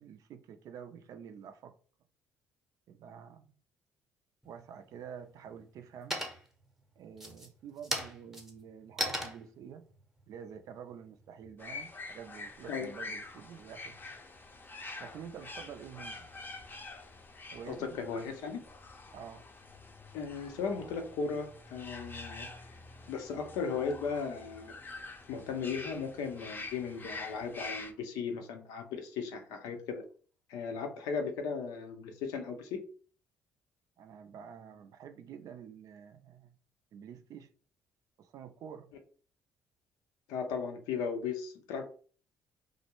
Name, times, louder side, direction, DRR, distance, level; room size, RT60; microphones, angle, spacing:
voice 1, 0.0-1.7 2.9-3.5 4.4-6.2 7.0-9.9 10.3-14.0 15.0-16.3 17.5-18.4 19.1-19.4 34.0-36.5 36.9-37.5 38.2-38.9, right 8 dB, 60° right, 0.4 m, -48 dB
sound 1, 4.4-5.0 5.4-5.8 6.1-6.7 7.1-11.5, equal, 5° right, 0.7 m, -38 dB
sound 2, 11.6-27.9, left 3 dB, 30° left, 0.5 m, -46 dB
voice 2, 17.7-18.6 20.1-22.5 23.1-24.7 25.3-30.0 30.5-32.8 40.3-41.8, left 5 dB, 75° left, 0.5 m, -36 dB
2.3 x 2.1 x 2.9 m
hypercardioid pair, 55°, 7 cm